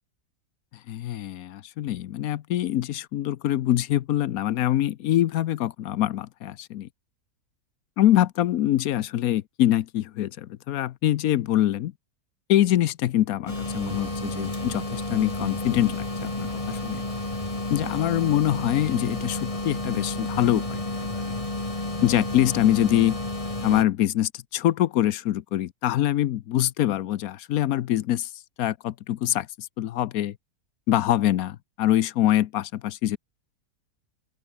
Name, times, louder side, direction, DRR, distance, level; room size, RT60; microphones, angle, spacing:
voice 1, 0.9-6.9 8.0-11.9 12.5-17.0 17.7-21.2 22.0-23.2 23.6-28.3 28.6-30.4 30.9-33.2, left 13 dB, 70° left, 1.1 m, -24 dB
sound 1, 13.5-23.8, left 2 dB, 20° left, 2.5 m, -31 dB
open air
omnidirectional pair, 1.7 m